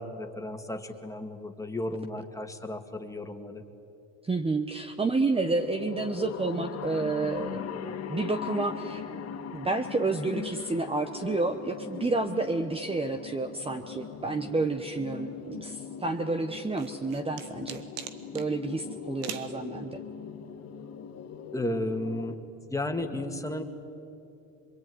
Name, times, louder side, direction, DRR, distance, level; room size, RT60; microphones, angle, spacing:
voice 1, 0.0-3.6 21.5-22.4 22.7-23.6, left 1 dB, 10° left, 5 dB, 2.3 m, -33 dB
voice 2, 4.2-9.0 9.5-17.8 18.3-20.0, right 3 dB, 15° right, 7 dB, 1.2 m, -30 dB
sound 1, 5.4-22.4, left 7 dB, 50° left, 2.3 m, -40 dB
sound 2, 16.5-18.5 19.2-19.5, right 9 dB, 85° right, 1.9 m, -40 dB
26.5 x 23.0 x 9.7 m, 2.7 s
cardioid pair, 105°, 33 cm